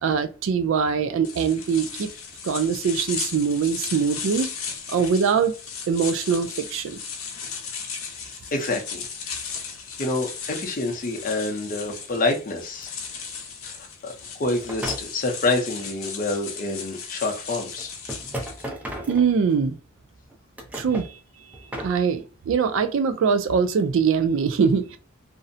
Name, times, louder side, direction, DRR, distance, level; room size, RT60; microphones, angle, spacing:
voice 1, 0.0-2.1 2.4-4.5 4.9-5.5 5.9-7.0 19.1-19.8 20.7-21.1 21.8-25.0, right 6 dB, 65° right, 0.3 m, -22 dB
sound 1, 1.2-18.7, left 6 dB, 85° left, 0.6 m, -36 dB
voice 2, 8.5-9.1 10.0-12.9 13.6-17.9, left 2 dB, 40° left, 0.6 m, -27 dB
sound 2, 12.8-12.9 14.6-15.1 16.8-16.9 17.8-19.7 20.3-21.1 21.5-22.0, right 1 dB, 5° right, 0.5 m, -34 dB
2.5 x 2.0 x 2.5 m
head